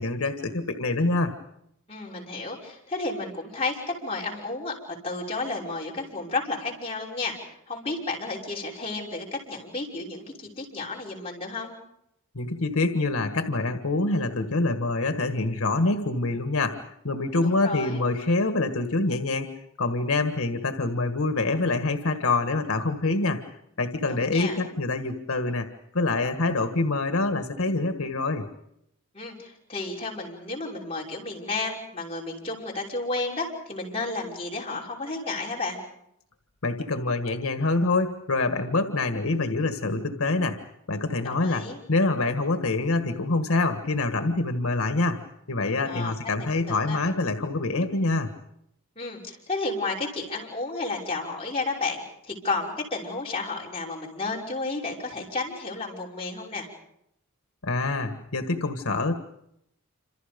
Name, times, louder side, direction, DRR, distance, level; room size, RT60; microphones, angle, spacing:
voice 1, 0.0-1.3 12.3-16.8 17.0-23.4 23.8-25.7 25.9-28.5 36.6-40.6 40.9-45.2 45.5-48.3 57.6-59.1, left 2 dB, 80° left, 7 dB, 1.6 m, -26 dB
voice 2, 1.9-11.7 17.4-18.0 24.1-24.6 29.1-35.8 41.2-41.8 45.8-47.0 49.0-56.7, left 3 dB, 25° left, -3 dB, 5.9 m, -32 dB
27.5 x 27.0 x 5.3 m, 0.77 s
head